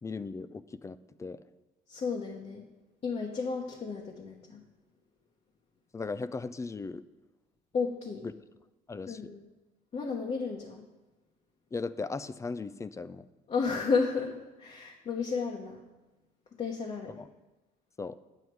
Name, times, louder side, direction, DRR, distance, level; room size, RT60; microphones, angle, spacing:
voice 1, 0.0-1.4 5.9-7.0 8.2-8.3 8.9-9.2 11.7-13.3 17.2-17.3 18.0-18.2, left 4 dB, 20° left, 15 dB, 0.4 m, -37 dB
voice 2, 1.9-2.6 3.0-4.6 7.7-8.2 9.0-9.4 9.9-10.9 13.5-14.3 14.6-15.8 16.6-17.2, left 5 dB, 40° left, 0 dB, 1.1 m, -32 dB
8.8 x 8.0 x 4.7 m, 1.1 s
cardioid pair, 110°, 17 cm